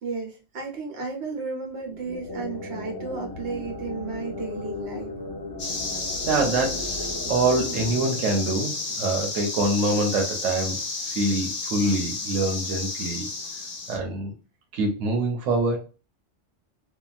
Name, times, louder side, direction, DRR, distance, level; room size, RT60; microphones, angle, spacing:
voice 1, 0.0-5.1, right 4 dB, 60° right, 2 dB, 1.2 m, -33 dB
sound 1, 1.8-9.4, left 2 dB, 5° left, 1.0 m, -37 dB
sound 2, 5.6-14.0, left 3 dB, 55° left, 0.7 m, -32 dB
voice 2, 6.3-10.8 11.1-13.3 13.9-14.3 14.7-15.8, right 2 dB, 85° right, 2 dB, 1.1 m, -25 dB
2.8 x 2.3 x 2.3 m, 0.31 s
omnidirectional pair, 1.3 m